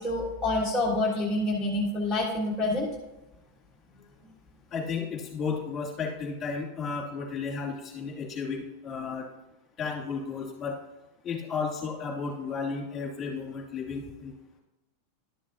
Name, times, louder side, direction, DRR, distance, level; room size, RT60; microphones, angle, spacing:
voice 1, 0.0-2.9, left 2 dB, ahead, -7 dB, 1.5 m, -27 dB
voice 2, 4.7-9.3 9.8-10.8 11.2-14.3, left 5 dB, 25° left, -2 dB, 2.5 m, -33 dB
11.5 x 7.1 x 2.8 m, 1.0 s
supercardioid pair, 145°, 0 cm